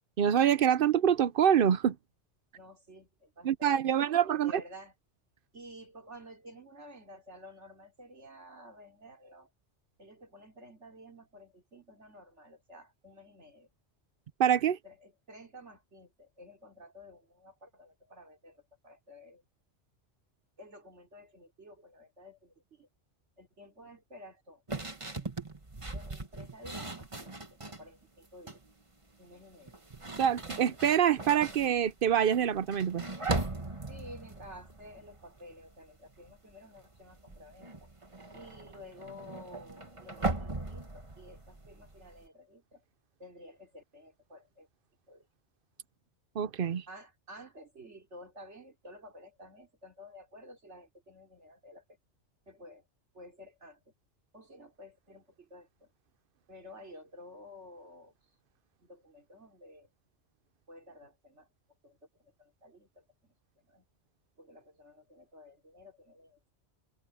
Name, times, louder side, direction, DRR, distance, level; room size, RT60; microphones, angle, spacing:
voice 1, 0.2-2.0 3.4-4.6 14.4-14.8 30.2-33.0 46.4-46.8, right 9 dB, 60° right, 0.8 m, -25 dB
voice 2, 2.5-4.9 5.5-9.5 10.0-13.7 14.8-19.4 20.6-22.9 23.4-25.3 25.9-28.6 29.2-29.8 33.9-37.9 38.3-42.8 43.2-44.7 45.1-45.3 46.9-52.0 52.5-52.9 53.1-53.9 54.3-55.9 56.5-58.1 58.8-59.9 60.7-61.5 61.8-63.9 64.4-66.5, left 1 dB, 85° right, 3.7 m, -52 dB
sound 1, 24.7-27.9 28.3-28.7 29.6-35.8 36.1-36.5 36.8-42.3, right 2 dB, 25° right, 1.7 m, -39 dB
open air
omnidirectional pair, 1.2 m